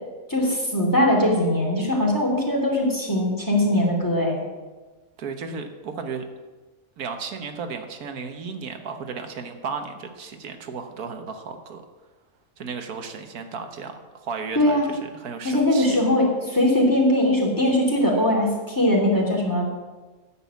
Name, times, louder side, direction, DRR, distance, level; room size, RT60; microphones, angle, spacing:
voice 1, 0.3-4.4 14.5-14.9 15.4-19.7, left 1 dB, 15° left, -2 dB, 2.9 m, -21 dB
voice 2, 5.2-6.2 7.0-11.8 12.6-16.0, right 5 dB, 90° right, 6 dB, 1.6 m, -34 dB
9.8 x 7.7 x 8.2 m, 1.3 s
omnidirectional pair, 1.5 m